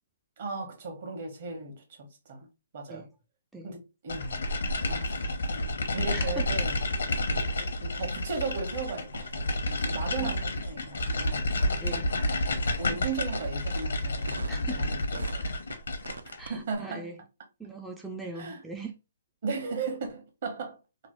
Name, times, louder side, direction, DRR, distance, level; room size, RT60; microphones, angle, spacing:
voice 1, 0.4-2.5 2.7-3.1 3.6-4.4 4.9-6.8 7.6-11.4 12.8-15.0 15.3-15.5 16.5-17.0 18.3-18.6 19.4-20.8, right 4 dB, 55° right, 1.1 m, -36 dB
sound 1, 4.1-16.4, left 1 dB, 75° left, 0.7 m, -30 dB
voice 2, 6.1-6.5 10.2-10.3 11.6-12.1 12.9-13.0 14.5-14.9 16.4-17.2 17.6-19.0, right 2 dB, 5° right, 0.3 m, -40 dB
sound 2, 13.3-13.5 13.7-13.8 14.2-14.7 15.1-15.8 16.0-16.5, right 4 dB, 80° right, 0.4 m, -40 dB
3.0 x 2.0 x 3.0 m
hypercardioid pair, 140°, 0 cm